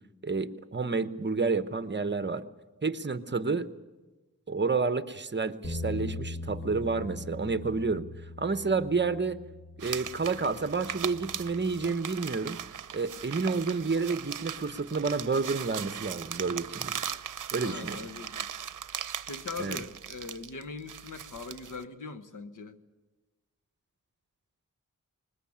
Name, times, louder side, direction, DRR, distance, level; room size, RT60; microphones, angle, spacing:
voice 1, 0.2-2.4 2.8-3.7 4.5-8.0 8.4-9.4 9.8-12.6 12.9-17.0 17.5-18.0 19.6-19.8, right 4 dB, 35° right, 12 dB, 1.1 m, -30 dB
Bass guitar, 5.6-11.9, left 2 dB, 40° left, 3.3 m, -41 dB
sound 1, 9.8-21.8, right 8 dB, 80° right, 0.7 m, -39 dB
voice 2, 17.6-18.5 19.3-22.8, left 4 dB, 75° left, 10 dB, 1.3 m, -41 dB
21.0 x 20.5 x 8.7 m, 1.2 s
wide cardioid pair, 80°, 31 cm